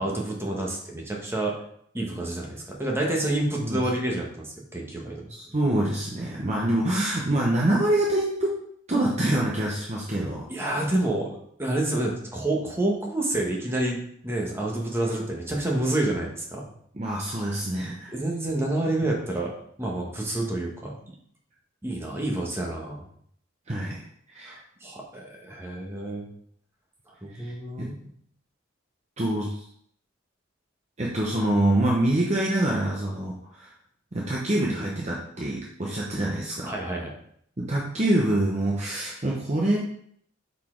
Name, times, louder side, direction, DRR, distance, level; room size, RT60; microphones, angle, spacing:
voice 1, 0.0-1.5 1.9-5.3 10.5-14.0 14.2-16.7 18.1-19.5 19.8-20.9 21.8-23.1 24.5-26.3 27.2-28.1 36.6-37.1, right 1 dB, 10° right, -1 dB, 1.2 m, -28 dB
voice 2, 5.3-8.6 8.9-10.5 16.9-18.1 23.7-24.0 24.3-24.6 27.3-27.5 27.8-27.9 29.2-29.6 31.0-33.7 34.1-36.7 37.6-39.8, right 1 dB, 35° right, -3 dB, 0.8 m, -25 dB
5.5 x 4.3 x 4.5 m, 0.67 s
head